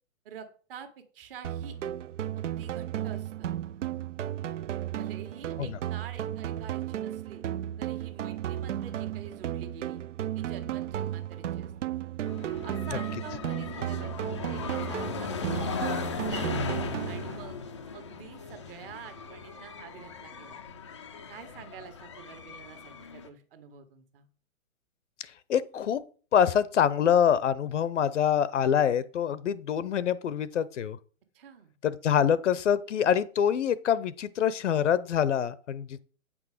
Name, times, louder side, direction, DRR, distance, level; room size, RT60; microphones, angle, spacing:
voice 1, 0.2-1.7 2.3-3.5 5.0-7.5 7.8-10.0 10.3-11.7 12.6-14.1 14.5-16.5 17.1-17.6 17.9-20.6 21.3-24.3 31.3-31.7, right 7 dB, 40° right, 7 dB, 1.7 m, -47 dB
sound 1, 1.4-17.4, right 11 dB, 60° right, 0.5 m, -34 dB
sound 2, 12.2-23.3, left 5 dB, 20° left, 0.4 m, -37 dB
voice 2, 25.5-26.0 26.3-31.0 31.8-36.0, left 8 dB, 55° left, 17 dB, 0.7 m, -25 dB
8.8 x 6.2 x 5.0 m, 0.40 s
hypercardioid pair, 145°, 43 cm